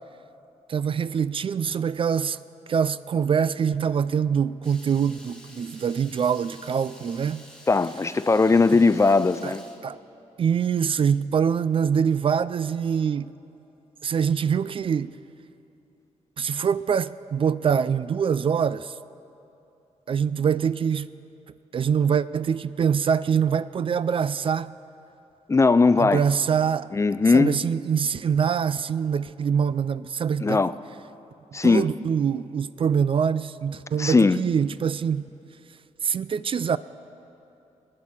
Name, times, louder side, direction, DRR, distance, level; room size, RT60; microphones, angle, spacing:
voice 1, 0.7-2.4 2.7-7.5 9.4-9.5 9.8-10.0 10.4-13.3 14.0-15.2 16.4-18.9 20.1-21.1 21.7-24.7 26.0-26.9 27.3-30.6 31.6-35.3 36.0-36.8, right 7 dB, 45° right, 0.3 m, -24 dB
Water tap faucet / Liquid, 4.6-9.8, left 1 dB, 5° left, 2.3 m, -49 dB
voice 2, 7.7-9.6 25.5-26.2 26.9-27.6 30.4-30.7 31.5-31.9 34.0-34.4, left 4 dB, 25° left, 0.4 m, -19 dB
18.5 x 9.7 x 7.4 m
cardioid pair, 100°, 13 cm